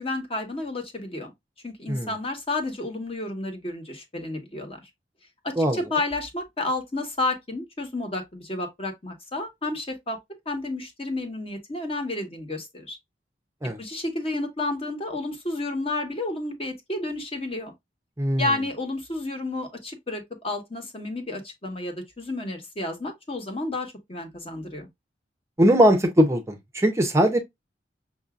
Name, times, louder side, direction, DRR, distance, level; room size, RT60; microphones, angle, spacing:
voice 1, 0.0-1.3 1.6-4.8 5.4-10.2 10.5-13.0 13.8-17.7 18.4-24.9, left 2 dB, 35° left, 1.2 m, -31 dB
voice 2, 18.2-18.5 25.6-27.4, equal, 15° right, 0.6 m, -20 dB
5.8 x 2.7 x 2.3 m
head